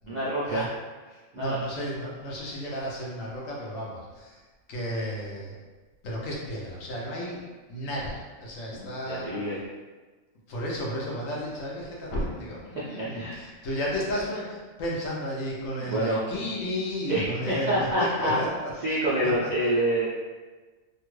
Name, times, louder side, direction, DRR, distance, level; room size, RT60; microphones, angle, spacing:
voice 1, 0.1-0.7 1.3-1.6 8.7-9.6 12.8-13.5 15.8-16.2 17.1-18.4 18.8-20.1, right 1 dB, 70° right, -8 dB, 0.4 m, -27 dB
voice 2, 1.1-4.4 4.7-5.5 6.0-7.4 7.7-9.3 10.5-19.5, equal, 70° left, -3 dB, 1.1 m, -33 dB
2.9 x 2.3 x 3.0 m, 1.3 s
omnidirectional pair, 1.4 m